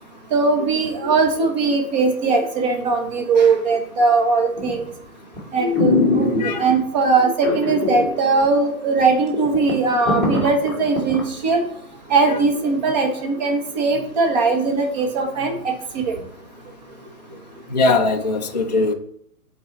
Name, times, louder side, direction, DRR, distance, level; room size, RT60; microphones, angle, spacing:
voice 1, 0.3-4.9 5.5-6.3 6.6-11.6 12.1-16.2, right 4 dB, 30° right, 4 dB, 1.3 m, -20 dB
sound 1, 4.6-4.9 5.4-5.5 5.7-6.8 7.4-8.1 8.4-8.5 9.0-9.1 9.3-11.2 11.6-11.7, left 2 dB, ahead, 1.1 m, -21 dB
voice 2, 17.7-18.9, left 3 dB, 30° left, 2 dB, 0.4 m, -20 dB
8.0 x 4.1 x 4.0 m, 0.67 s
hypercardioid pair, 150°, 46 cm